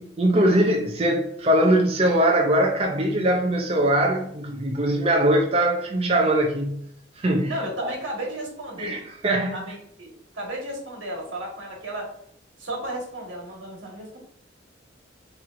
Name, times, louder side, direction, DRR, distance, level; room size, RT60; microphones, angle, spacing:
voice 1, 0.0-6.8 7.2-7.5 7.8-7.9 8.8-9.6, right 1 dB, 30° right, 0.5 m, -21 dB
voice 2, 7.5-8.9 9.5-12.1 12.6-14.2, right 1 dB, 85° right, 1.5 m, -34 dB
5.8 x 3.1 x 2.5 m
head